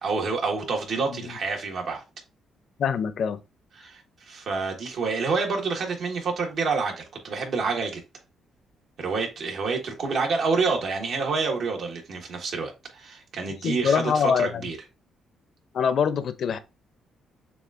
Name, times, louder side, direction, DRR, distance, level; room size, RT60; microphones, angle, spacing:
voice 1, 0.0-2.0 3.8-8.0 9.0-14.8, right 4 dB, 65° right, 1.4 m, -28 dB
voice 2, 2.8-3.4 13.6-14.7 15.7-16.6, left 7 dB, 60° left, 0.6 m, -24 dB
6.8 x 2.4 x 2.5 m
cardioid pair, 90°, 0 cm